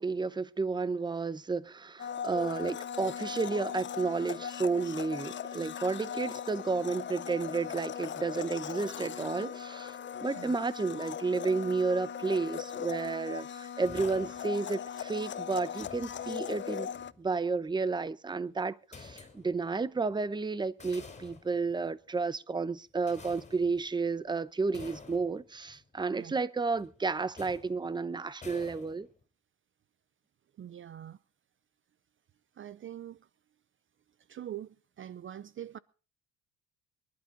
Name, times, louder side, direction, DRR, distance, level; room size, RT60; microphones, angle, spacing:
voice 1, 0.0-9.9 10.2-16.9 17.2-29.1, right 4 dB, 15° right, 0.8 m, -32 dB
Domestic sounds home sounds, 2.0-17.1, left 8 dB, 35° left, 0.7 m, -39 dB
sound 1, 13.8-14.7 15.6-17.3 18.9-19.7 20.6-22.1 23.0-24.1 24.7-25.9 26.8-27.0 27.3-28.0 28.4-29.2, left 4 dB, 20° left, 3.8 m, -51 dB
voice 2, 30.6-31.2 32.6-33.3 34.3-35.8, right 11 dB, 40° right, 0.6 m, -43 dB
24.5 x 11.5 x 3.9 m
cardioid pair, 120°, 31 cm